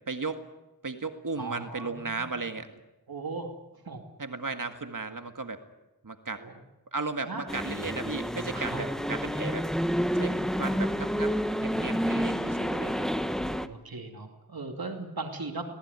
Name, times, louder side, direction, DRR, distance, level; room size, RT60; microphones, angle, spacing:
voice 1, 0.1-0.4 0.8-2.7 4.2-5.6 6.0-6.4 6.9-13.1, right 3 dB, 65° right, 7 dB, 1.9 m, -35 dB
voice 2, 1.4-2.2 3.1-3.5 3.8-4.0 6.4-6.5 7.3-7.5 8.5-8.8 9.2-9.3 10.1-10.2 11.7-12.5 13.4-15.6, right 3 dB, 85° right, 4 dB, 2.6 m, -39 dB
sound 1, 7.5-13.7, equal, ahead, 1.2 m, -29 dB
25.0 x 19.0 x 9.6 m, 1.0 s
wide cardioid pair, 65°, 35 cm